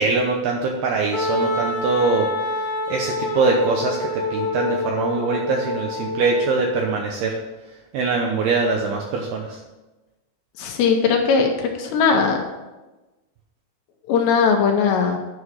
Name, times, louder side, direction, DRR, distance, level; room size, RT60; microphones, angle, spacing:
voice 1, 0.0-2.3 2.9-7.4 7.9-9.6, right 4 dB, 80° right, 1 dB, 2.4 m, -22 dB
Wind instrument woodwind instrument, 1.1-6.8, left 2 dB, 60° left, 2.3 m, -27 dB
voice 2, 10.6-12.4 14.1-15.2, left 5 dB, 75° left, 2 dB, 2.9 m, -19 dB
9.8 x 5.6 x 6.3 m, 1.1 s
omnidirectional pair, 5.4 m